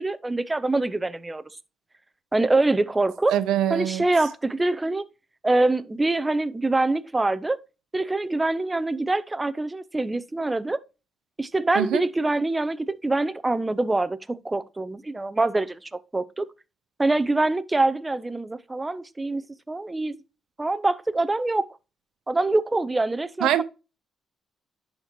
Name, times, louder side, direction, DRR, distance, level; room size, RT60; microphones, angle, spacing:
voice 1, 0.0-1.4 2.3-3.3 3.7-5.0 5.4-7.6 7.9-10.8 11.4-16.5 17.0-19.4 19.7-20.2 20.6-21.6 22.3-23.6, right 2 dB, 15° right, 0.6 m, -24 dB
voice 2, 3.3-4.0 11.7-12.0 23.4-23.6, right 11 dB, 90° right, 0.7 m, -23 dB
11.0 x 4.3 x 2.9 m
cardioid pair, 90°, 0 cm